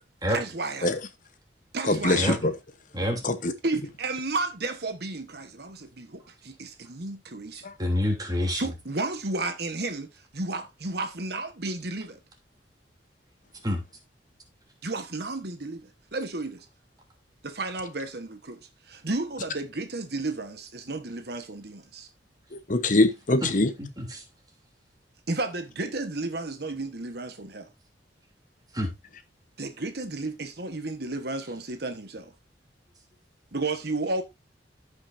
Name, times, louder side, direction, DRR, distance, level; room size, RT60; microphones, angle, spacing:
voice 1, 0.3-0.9 1.7-2.4 3.6-7.6 8.6-12.2 14.8-16.7 17.4-18.6 18.8-22.1 25.3-27.7 29.6-32.3 33.5-34.2, right 2 dB, 60° right, 1.2 m, -32 dB
voice 2, 1.9-2.5 3.2-3.5 7.6-7.7 22.7-23.7, left 2 dB, 45° left, 0.9 m, -23 dB
voice 3, 7.8-8.6 13.6-13.8 23.8-24.2 28.7-28.9, left 1 dB, 20° right, 3.0 m, -27 dB
15.0 x 5.9 x 2.6 m
head